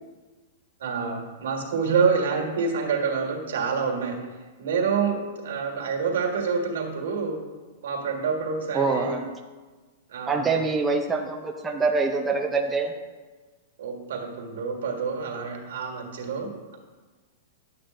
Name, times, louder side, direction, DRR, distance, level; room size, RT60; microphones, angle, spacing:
voice 1, 0.8-4.2 4.6-7.4 7.8-9.2 10.1-10.5 13.8-16.8, right 5 dB, 85° right, 1 dB, 1.9 m, -27 dB
voice 2, 8.7-9.3 10.3-12.9, right 4 dB, 10° right, 2 dB, 0.5 m, -25 dB
11.0 x 8.7 x 2.6 m, 1.3 s
supercardioid pair, 180°, 0 cm